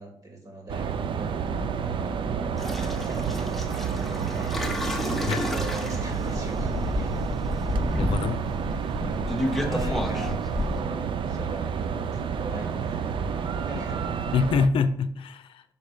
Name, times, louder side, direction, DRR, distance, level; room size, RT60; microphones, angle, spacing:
voice 1, 0.0-2.2 2.5-4.7 5.3-7.1 9.1-10.3 10.7-14.1, right 2 dB, 40° right, 1 dB, 2.0 m, -41 dB
sound 1, 0.7-14.7, right 6 dB, 65° right, 0.5 m, -30 dB
sound 2, 2.6-10.8, left 1 dB, ahead, 0.9 m, -30 dB
voice 2, 7.8-8.4 13.7-13.8 14.3-15.6, left 5 dB, 80° left, 11 dB, 0.5 m, -25 dB
5.0 x 4.2 x 5.6 m, 0.63 s
cardioid pair, 95°, 9 cm